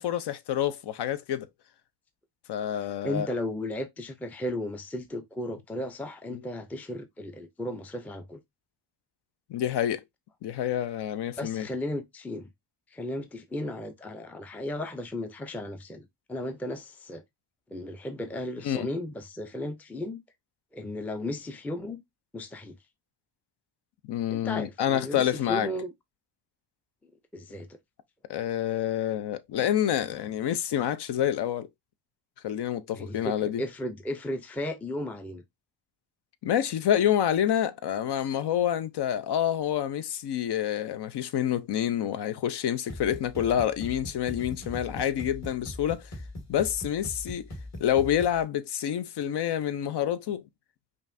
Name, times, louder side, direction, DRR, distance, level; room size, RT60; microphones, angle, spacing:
voice 1, 0.0-1.5 2.5-3.3 6.3-6.4 9.5-10.0 10.4-11.7 18.6-18.9 24.0-25.7 28.3-31.7 32.4-33.6 36.4-46.1 46.5-47.5 47.8-50.4, left 10 dB, 70° left, 0.6 m, -28 dB
voice 2, 2.7-8.4 11.4-12.5 12.9-17.2 17.7-20.2 20.7-22.0 22.3-22.8 24.3-25.9 27.3-27.8 32.9-35.4, left 1 dB, 5° left, 0.4 m, -35 dB
sound 1, 42.9-48.4, left 1 dB, 40° left, 1.6 m, -41 dB
5.3 x 2.5 x 2.6 m
cardioid pair, 100°, 43 cm